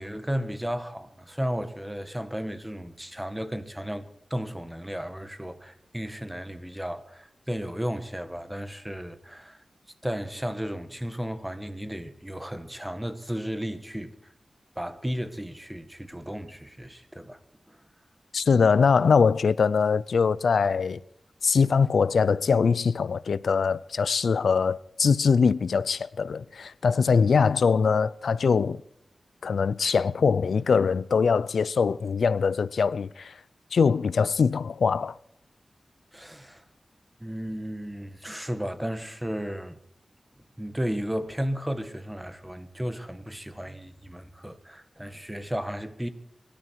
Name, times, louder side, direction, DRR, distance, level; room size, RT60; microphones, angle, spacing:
voice 1, 0.0-9.6 10.0-14.1 14.8-17.4 17.7-17.8 36.1-36.6 37.2-39.8 40.6-46.1, equal, 10° right, 1.7 m, -34 dB
voice 2, 18.3-21.0 21.4-28.8 29.4-33.4 33.7-35.2, left 5 dB, 90° left, 0.5 m, -22 dB
24.0 x 13.0 x 4.7 m
wide cardioid pair, 85°, 0 cm